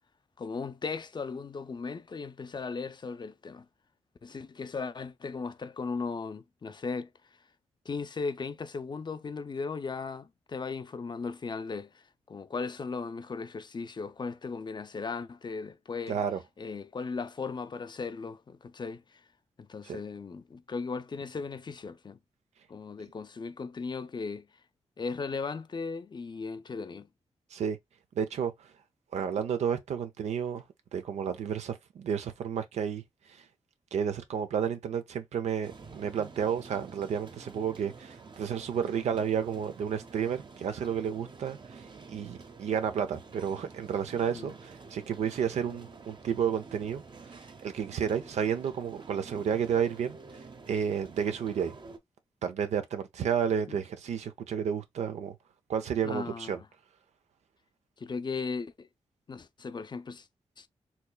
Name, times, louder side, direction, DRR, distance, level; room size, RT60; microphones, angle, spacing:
voice 1, 0.4-3.7 4.2-7.1 7.9-16.2 16.6-19.0 19.6-22.2 22.7-24.5 25.0-27.1 44.3-44.5 53.7-53.8 56.0-56.6 58.0-58.9 59.3-60.3 60.6-60.7, left 4 dB, 45° left, 0.5 m, -37 dB
voice 2, 16.1-16.4 19.8-20.0 27.5-27.8 28.1-28.7 29.1-30.6 30.9-33.0 33.9-50.2 50.7-51.7 52.4-55.4 55.7-56.6, right 7 dB, 85° right, 0.6 m, -31 dB
sound 1, 35.6-52.0, right 4 dB, 45° right, 0.8 m, -49 dB
4.4 x 2.9 x 2.2 m
cardioid pair, 55°, 11 cm